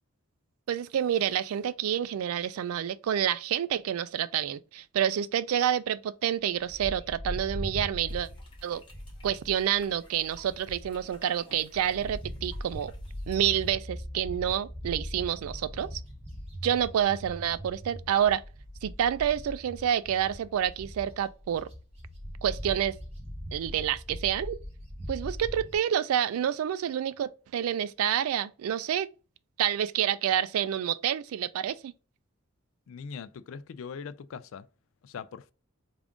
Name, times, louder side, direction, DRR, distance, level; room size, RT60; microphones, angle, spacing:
voice 1, 0.7-8.3 8.6-8.8 9.2-12.9 13.3-16.0 16.6-18.4 18.8-21.7 22.4-23.0 23.5-24.6 25.1-29.1 29.6-31.9, right 9 dB, 90° right, 0.3 m, -28 dB
Bird, 6.7-11.2 11.5-25.7, equal, 30° right, 1.1 m, -40 dB
sound 1, 8.1-13.7, left 2 dB, 25° left, 0.7 m, -57 dB
voice 2, 32.9-34.7 35.0-35.5, left 6 dB, 75° left, 0.3 m, -41 dB
3.5 x 2.5 x 3.5 m
head